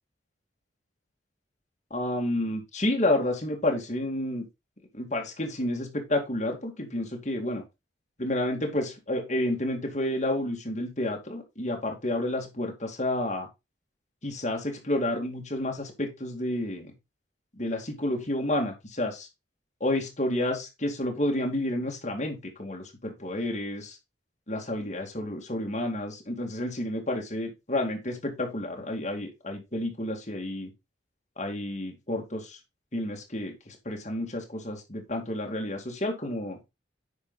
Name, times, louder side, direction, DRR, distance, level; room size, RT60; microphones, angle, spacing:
voice 1, 1.9-4.5 4.9-7.6 8.2-13.5 14.2-16.9 17.6-19.3 19.8-24.0 24.5-30.7 31.4-32.6 32.9-36.6, left 1 dB, 40° left, 1 dB, 2.2 m, -30 dB
9.8 x 4.9 x 4.0 m, 0.23 s
head